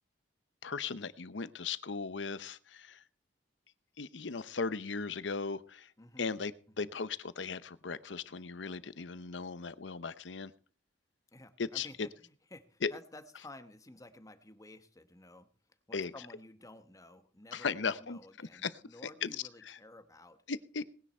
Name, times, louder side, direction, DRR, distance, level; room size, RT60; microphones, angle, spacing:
voice 1, 0.6-3.0 4.0-5.9 6.2-10.5 11.6-11.9 12.8-12.9 15.9-16.1 17.5-18.7 19.0-19.3 19.7-19.8 20.5-20.8, left 5 dB, 90° left, 15 dB, 0.8 m, -37 dB
voice 2, 6.0-6.3 6.8-6.9 11.3-15.5 15.9-20.4, left 1 dB, 20° left, 10 dB, 1.1 m, -53 dB
19.5 x 10.0 x 4.4 m, 0.42 s
head